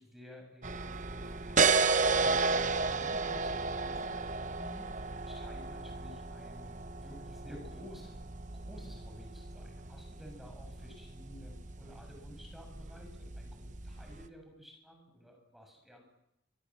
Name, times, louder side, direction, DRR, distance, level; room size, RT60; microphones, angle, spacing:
voice 1, 0.0-8.2 8.7-16.0, equal, ahead, 2 dB, 7.3 m, -53 dB
sound 1, 0.6-14.3, right 4 dB, 40° right, 1.0 m, -33 dB
26.5 x 24.5 x 7.5 m, 0.84 s
head